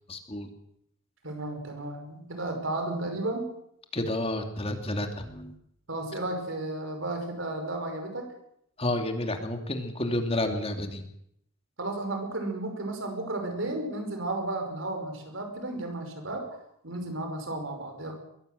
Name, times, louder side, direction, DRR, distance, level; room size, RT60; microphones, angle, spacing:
voice 1, 0.1-0.5 3.9-5.5 8.8-11.0, left 1 dB, 30° left, 5 dB, 2.7 m, -30 dB
voice 2, 1.2-3.5 5.9-8.3 11.8-16.5 16.8-18.1, right 2 dB, 70° right, 4 dB, 5.5 m, -33 dB
22.0 x 16.0 x 8.0 m, 0.72 s
head